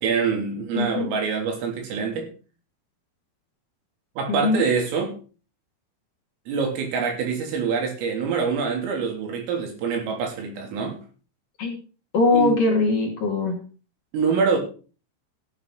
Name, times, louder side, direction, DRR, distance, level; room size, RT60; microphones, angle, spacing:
voice 1, 0.0-2.3 4.2-5.2 6.5-11.0 12.3-12.6 14.1-14.6, right 5 dB, 80° right, 2 dB, 5.9 m, -25 dB
voice 2, 0.8-1.1 4.3-4.7 11.6-11.8 12.1-13.6, left 3 dB, 45° left, -1 dB, 3.8 m, -21 dB
15.0 x 10.0 x 4.1 m, 0.36 s
omnidirectional pair, 5.8 m